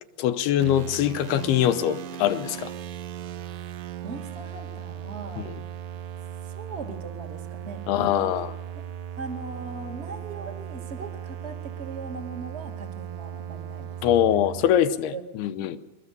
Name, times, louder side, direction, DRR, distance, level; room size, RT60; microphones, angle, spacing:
voice 1, 0.2-2.7 5.4-5.6 7.9-8.5 14.0-15.8, left 11 dB, 80° left, 2.9 m, -23 dB
sound 1, 0.6-14.7, right 9 dB, 70° right, 2.4 m, -37 dB
voice 2, 4.0-5.5 6.4-8.4 8.7-8.8 9.2-13.9 14.3-14.4 15.1-15.2 15.5-15.8, right 4 dB, 25° right, 1.7 m, -39 dB
23.5 x 20.5 x 6.7 m
omnidirectional pair, 4.5 m